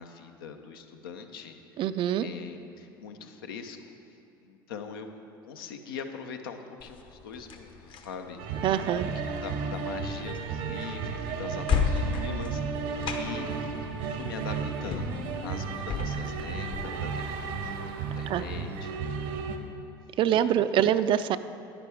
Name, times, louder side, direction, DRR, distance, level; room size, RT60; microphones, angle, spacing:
voice 1, 0.0-1.5 2.2-4.0 4.4-5.1 5.4-8.6 9.0-13.6 14.0-17.9 18.1-18.9 20.3-20.5, left 6 dB, 80° left, 6 dB, 0.7 m, -42 dB
voice 2, 1.8-2.3 8.6-9.1 18.3-18.4 20.2-21.4, right 10 dB, 45° right, 13 dB, 0.4 m, -24 dB
sound 1, 6.8-16.8, left 5 dB, 45° left, 1.0 m, -35 dB
sound 2, 8.4-19.6, right 5 dB, 65° right, 0.8 m, -33 dB
10.0 x 9.9 x 3.5 m, 2.6 s
hypercardioid pair, 70°, 12 cm